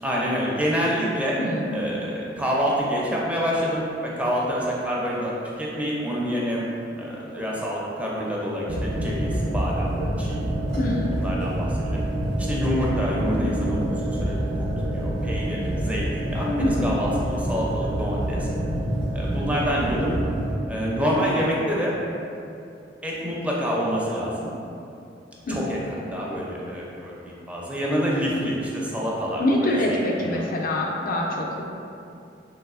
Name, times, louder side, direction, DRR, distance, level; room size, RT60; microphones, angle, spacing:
voice 1, 0.0-1.4 1.7-5.3 5.6-6.6 7.0-9.9 10.2-10.4 11.1-12.0 12.4-14.7 14.9-18.5 19.1-20.2 20.7-22.0 23.0-24.5 25.5-30.5, equal, 5° right, -5 dB, 0.5 m, -27 dB
voice 2, 1.4-1.8 10.8-11.2 16.4-17.0 25.5-25.6 29.4-31.6, left 1 dB, 50° left, -1 dB, 0.4 m, -25 dB
sound 1, 8.7-20.5, right 1 dB, 90° right, 1.2 m, -27 dB
3.2 x 3.1 x 2.3 m, 2.6 s
head